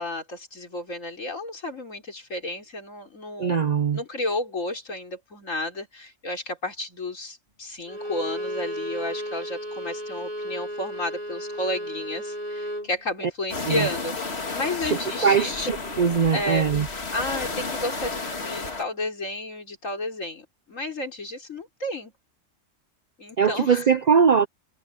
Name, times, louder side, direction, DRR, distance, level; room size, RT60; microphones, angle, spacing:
voice 1, 0.0-3.7 3.9-15.7 16.3-16.7 17.1-22.1 23.2-23.8, left 1 dB, 90° left, 4.3 m, -32 dB
voice 2, 3.4-4.0 13.7-13.9 14.8-16.9 23.4-24.5, right 6 dB, 60° right, 0.4 m, -21 dB
Bowed string instrument, 7.9-12.9, equal, 30° right, 6.3 m, -33 dB
sound 1, 13.5-18.8, left 3 dB, 55° left, 2.4 m, -32 dB
omnidirectional pair, 1.3 m